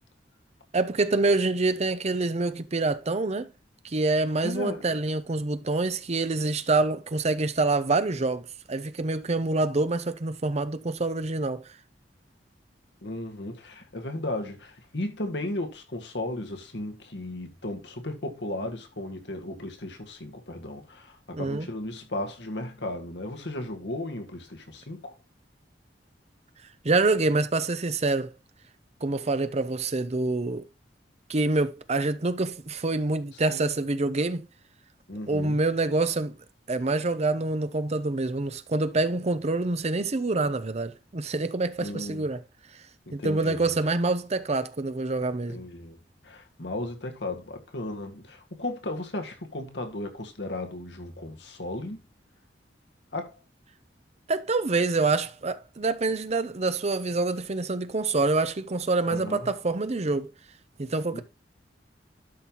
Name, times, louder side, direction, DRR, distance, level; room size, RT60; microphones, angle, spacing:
voice 1, 0.7-3.5 3.8-11.7 21.3-21.7 26.8-28.3 29.0-30.7 31.3-34.5 35.3-36.4 36.7-42.4 43.1-45.6 54.3-60.3 60.8-61.2, right 3 dB, 40° right, 0.7 m, -26 dB
voice 2, 4.4-4.8 13.0-25.2 33.5-33.8 35.1-35.6 41.8-42.3 43.1-43.7 45.5-46.0 46.2-52.0 53.1-53.4 59.1-59.5 61.1-61.2, left 1 dB, 75° left, 1.8 m, -35 dB
12.5 x 5.5 x 3.0 m
head